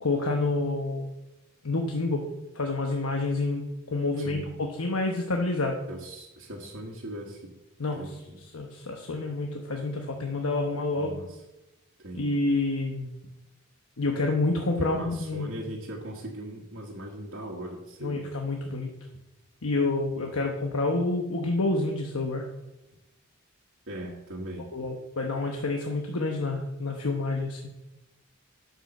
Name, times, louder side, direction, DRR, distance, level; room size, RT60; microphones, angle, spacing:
voice 1, 0.0-1.1 1.6-2.3 2.5-5.8 7.8-11.1 12.1-13.1 14.0-15.5 18.0-18.9 19.6-22.4 24.7-27.6, left 2 dB, 75° left, 2 dB, 1.1 m, -28 dB
voice 2, 4.2-4.5 5.9-7.5 7.9-8.4 11.0-11.3 12.0-12.3 14.8-18.3 23.9-24.7, right 1 dB, 55° right, -4 dB, 1.6 m, -39 dB
10.0 x 5.6 x 6.6 m, 0.97 s
head